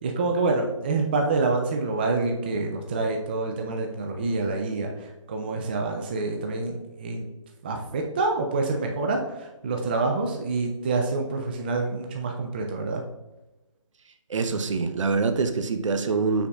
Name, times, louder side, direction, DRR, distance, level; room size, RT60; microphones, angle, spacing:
voice 1, 0.0-7.2 7.6-13.0, right 3 dB, 20° right, 2 dB, 0.3 m, -27 dB
voice 2, 14.3-16.5, right 4 dB, 65° right, 8 dB, 0.7 m, -25 dB
7.9 x 5.9 x 2.3 m, 1.0 s
hypercardioid pair, 160°, 17 cm